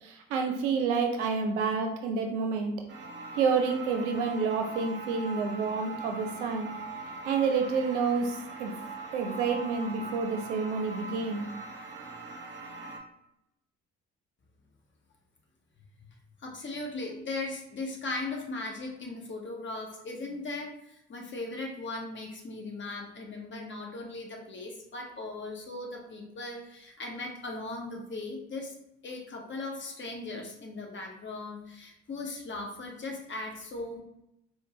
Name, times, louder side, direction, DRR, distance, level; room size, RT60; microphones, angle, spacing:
voice 1, 0.0-2.7 3.4-6.7 7.3-8.7 9.1-11.5, right 5 dB, 80° right, 3 dB, 0.5 m, -29 dB
sound 1, 2.9-13.0, right 3 dB, 30° right, 0.8 m, -41 dB
voice 2, 16.4-28.7 29.0-34.0, left 2 dB, 35° left, 0 dB, 1.0 m, -38 dB
4.4 x 2.2 x 2.9 m, 0.83 s
figure-of-eight pair, 50°, 35 cm